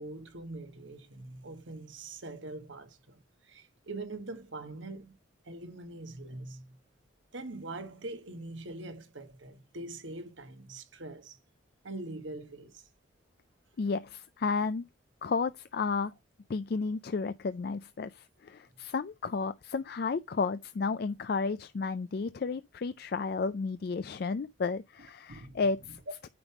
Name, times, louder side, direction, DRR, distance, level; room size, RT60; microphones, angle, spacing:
voice 1, 0.0-5.2 5.4-6.8 7.3-11.4 11.8-12.8 25.3-25.6, right 2 dB, 80° right, 1.5 m, -43 dB
voice 2, 13.8-14.8 15.2-16.1 16.5-26.3, left 4 dB, 55° left, 0.4 m, -32 dB
9.4 x 3.5 x 5.9 m
head